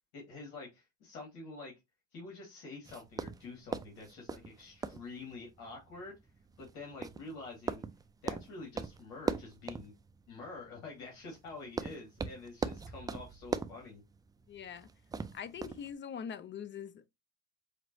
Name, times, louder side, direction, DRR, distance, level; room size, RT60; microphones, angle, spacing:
voice 1, 0.1-1.7 2.1-6.2 6.6-7.8 8.2-9.9 10.3-14.0, left 3 dB, 80° left, 2.2 m, -47 dB
sound 1, 2.8-15.9, right 4 dB, 10° right, 0.3 m, -42 dB
voice 2, 14.5-14.9 15.3-17.1, left 7 dB, 30° left, 0.6 m, -43 dB
5.1 x 3.0 x 2.7 m
supercardioid pair, 85°, 36 cm